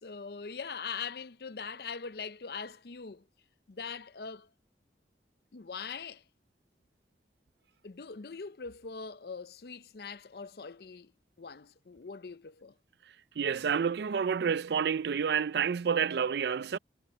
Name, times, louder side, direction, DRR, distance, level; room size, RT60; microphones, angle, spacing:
voice 1, 0.0-3.2 3.7-4.5 5.5-6.2 7.8-11.1 11.4-12.7, left 5 dB, 60° left, 0.6 m, -42 dB
voice 2, 13.4-16.8, right 7 dB, 70° right, 0.4 m, -29 dB
head